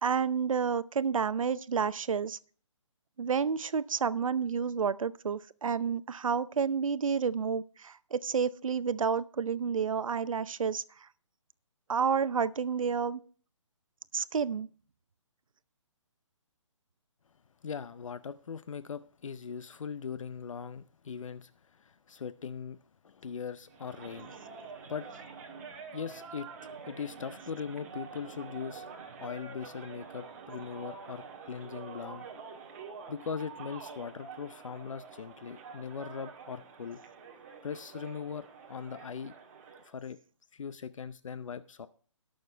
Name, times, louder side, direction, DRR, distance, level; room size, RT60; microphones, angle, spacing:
voice 1, 0.0-2.4 3.2-11.1 11.9-13.2 14.1-14.7, right 6 dB, 85° right, 0.7 m, -30 dB
voice 2, 17.6-22.8 23.0-25.1 25.9-26.5 26.9-28.9 29.2-32.3 33.1-37.0 37.6-39.3 39.8-40.2 40.5-41.9, left 6 dB, 75° left, 0.6 m, -40 dB
sound 1, 23.7-39.9, right 5 dB, 30° right, 1.6 m, -47 dB
19.0 x 6.6 x 3.3 m
hypercardioid pair, 170°, 17 cm